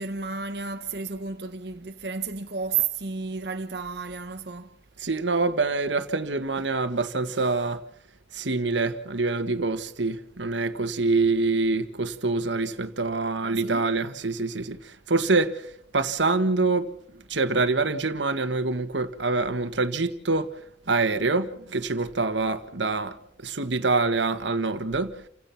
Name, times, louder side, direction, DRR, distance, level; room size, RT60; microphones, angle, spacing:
voice 1, 0.0-4.8 13.4-13.9, right 5 dB, 65° right, 1.1 m, -32 dB
voice 2, 5.0-7.8 8.3-14.8 15.1-15.6 15.9-16.9 17.3-20.5 20.9-25.1, right 3 dB, 85° right, 1.6 m, -25 dB
29.5 x 16.5 x 5.9 m
head